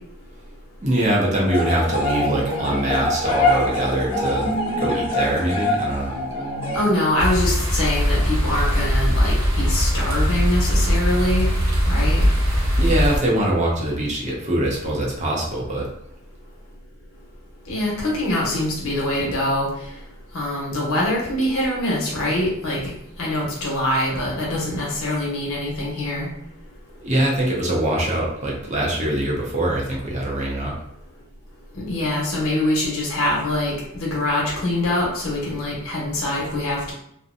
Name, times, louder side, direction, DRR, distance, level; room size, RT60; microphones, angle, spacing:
voice 1, 0.8-4.5 4.8-6.1 12.8-15.9 27.0-30.7, right 1 dB, 35° right, -3 dB, 0.6 m, -23 dB
sound 1, 1.5-6.8, left 1 dB, 25° left, 0.7 m, -24 dB
voice 2, 6.7-11.5 11.9-12.2 17.7-19.7 20.3-22.9 23.2-26.3 31.8-36.9, left 1 dB, 80° left, -4 dB, 1.0 m, -24 dB
sound 2, 7.2-13.2, equal, 65° right, 0.8 m, -20 dB
2.6 x 2.1 x 2.5 m, 0.76 s
head